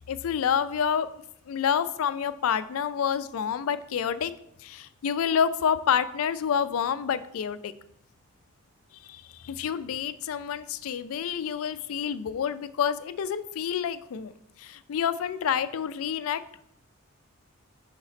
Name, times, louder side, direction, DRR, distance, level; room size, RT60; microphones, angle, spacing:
voice 1, 0.1-1.1 1.5-4.3 4.6-7.7 9.1-14.3 14.6-16.4, left 8 dB, 80° left, 14 dB, 0.4 m, -28 dB
5.9 x 3.9 x 4.1 m, 0.76 s
head